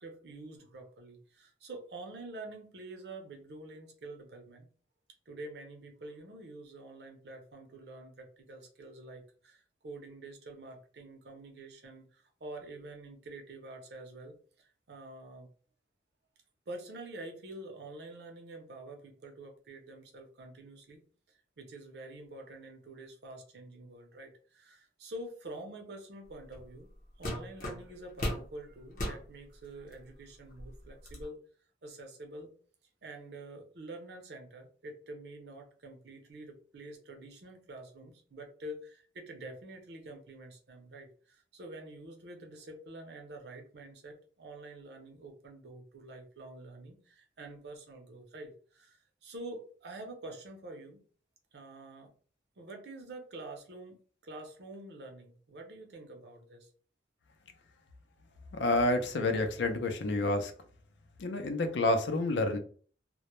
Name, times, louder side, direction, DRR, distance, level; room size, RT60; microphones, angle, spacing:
voice 1, 0.0-4.7 5.3-15.5 16.7-26.9 27.2-31.4 31.8-32.5 33.0-51.0 51.5-52.1 52.6-56.7, right 2 dB, 65° right, 0.6 m, -47 dB
sound 1, 26.5-26.7 27.2-28.5 28.9-29.2 29.9-30.0 30.5-31.3, left 1 dB, 50° left, 0.7 m, -36 dB
voice 2, 58.5-60.5 61.2-62.6, left 2 dB, 85° left, 0.5 m, -29 dB
2.1 x 2.0 x 2.9 m
head